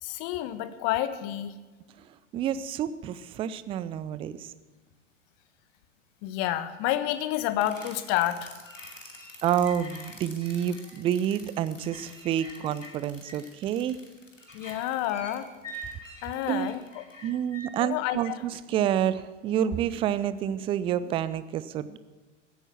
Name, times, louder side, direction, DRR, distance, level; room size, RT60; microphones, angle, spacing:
voice 1, 0.0-1.5 6.2-8.5 14.5-15.5 16.2-17.0 17.8-18.4, left 13 dB, 40° left, 13 dB, 1.1 m, -29 dB
voice 2, 2.3-4.5 9.4-14.0 16.5-16.7 17.2-22.0, right 10 dB, 15° right, 15 dB, 0.4 m, -28 dB
sound 1, 7.6-17.7, equal, 85° left, 2.6 m, -46 dB
15.0 x 9.0 x 7.3 m, 1.3 s
figure-of-eight pair, 90°, 37 cm